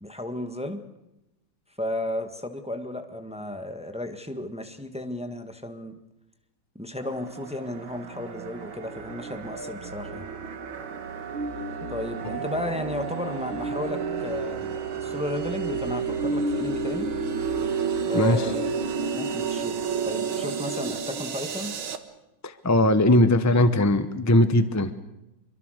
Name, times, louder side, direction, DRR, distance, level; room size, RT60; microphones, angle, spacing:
voice 1, 0.0-0.8 1.8-6.0 6.7-10.2 11.9-17.1 18.0-18.7 19.1-21.7, left 1 dB, 5° right, 7 dB, 1.4 m, -34 dB
sound 1, 7.0-22.0, right 5 dB, 90° right, 2.4 m, -31 dB
voice 2, 18.1-18.5 22.4-24.9, left 1 dB, 20° left, 11 dB, 0.4 m, -20 dB
26.0 x 24.0 x 6.6 m, 0.91 s
omnidirectional pair, 2.2 m